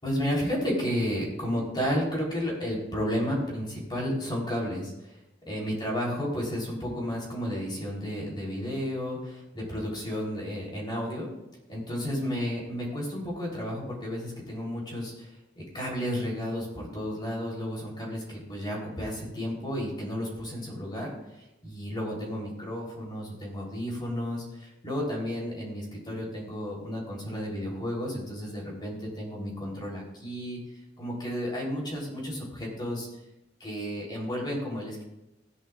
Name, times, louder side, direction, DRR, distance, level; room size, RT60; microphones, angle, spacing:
voice 1, 0.0-5.1 5.5-11.3 11.7-15.3 15.6-21.2 21.6-30.6 31.0-33.1 33.6-35.0, equal, 25° left, -3 dB, 3.6 m, -32 dB
16.0 x 10.5 x 2.5 m, 0.94 s
head